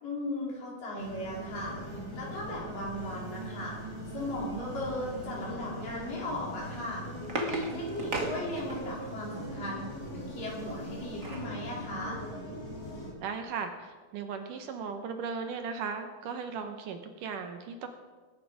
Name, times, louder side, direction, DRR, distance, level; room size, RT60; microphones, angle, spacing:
voice 1, 0.0-1.8 2.1-3.8 4.1-7.0 7.4-9.9 10.1-12.3, left 1 dB, 65° left, -5 dB, 6.0 m, -37 dB
sound 1, 1.0-13.1, equal, 35° left, 6.2 m, -41 dB
sound 2, 7.0-9.1 10.7-11.6 12.0-12.1 12.4-12.6, right 2 dB, 40° right, 1.2 m, -37 dB
voice 2, 13.2-17.9, right 5 dB, 70° right, 6 dB, 2.3 m, -37 dB
21.0 x 11.0 x 4.8 m, 1.3 s
omnidirectional pair, 4.2 m